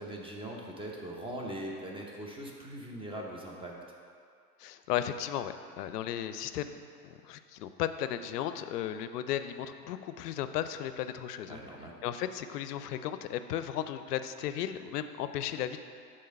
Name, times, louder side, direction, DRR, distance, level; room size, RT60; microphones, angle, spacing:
voice 1, 0.0-3.7 11.5-12.0, right 1 dB, 10° right, -1 dB, 0.8 m, -41 dB
voice 2, 4.6-11.6 12.0-15.8, left 11 dB, 70° left, 11 dB, 0.5 m, -35 dB
6.6 x 3.7 x 5.2 m, 2.3 s
hypercardioid pair, 95°, 48 cm